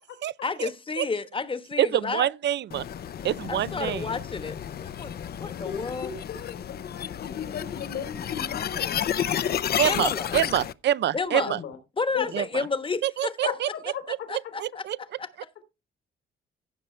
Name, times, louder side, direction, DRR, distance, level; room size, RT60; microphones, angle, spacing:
voice 1, 0.4-2.3 3.5-4.6 4.8-5.1 5.4-6.1 9.8-10.3 11.1-11.5 12.0-13.5 14.3-14.9 15.2-15.3, left 4 dB, 25° left, 1.2 m, -31 dB
voice 2, 1.8-2.8 3.2-4.1 9.8-11.6 12.3-12.4 13.0-13.7 14.1-15.0, right 11 dB, 60° right, 0.5 m, -26 dB
sound 1, 2.7-10.7, left 9 dB, 55° left, 0.7 m, -31 dB
voice 3, 5.6-9.1 11.5-11.8 12.1-12.3 13.4-14.5, left 8 dB, 80° left, 2.9 m, -36 dB
16.0 x 6.0 x 3.3 m
cardioid pair, 90°, 20 cm